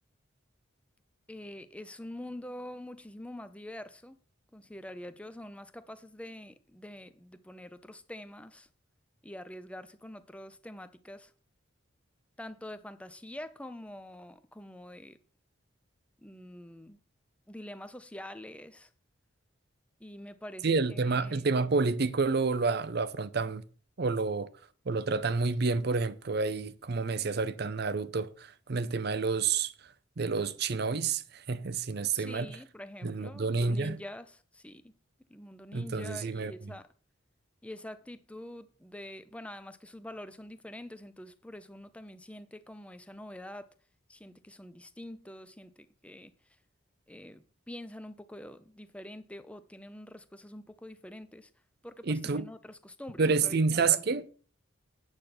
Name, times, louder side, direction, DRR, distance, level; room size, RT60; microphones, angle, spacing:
voice 1, 1.3-4.2 4.5-8.7 9.2-11.3 12.4-15.2 16.2-17.0 17.5-18.9 20.0-21.6 32.1-34.9 35.3-36.9 37.6-43.7 44.1-46.3 47.1-51.5 51.8-53.9, left 1 dB, 5° left, 0.6 m, -46 dB
voice 2, 20.6-23.6 24.0-24.5 24.9-29.7 30.2-32.5 33.0-34.0 35.7-36.5 52.1-52.4 53.2-54.3, right 4 dB, 55° right, 0.6 m, -29 dB
8.9 x 8.3 x 5.9 m
head